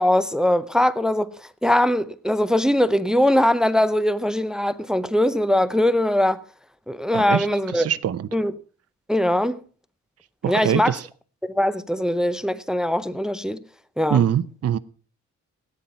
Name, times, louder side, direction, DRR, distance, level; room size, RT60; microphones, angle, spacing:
voice 1, 0.0-6.4 6.9-7.9 8.3-8.5 9.1-9.6 10.5-10.9 11.4-13.6 14.0-14.2, left 1 dB, ahead, 0.6 m, -21 dB
voice 2, 7.1-7.5 7.7-8.3 10.4-11.0 14.1-14.8, right 9 dB, 55° right, 0.7 m, -23 dB
17.5 x 9.4 x 5.6 m
cardioid pair, 120°, 30 cm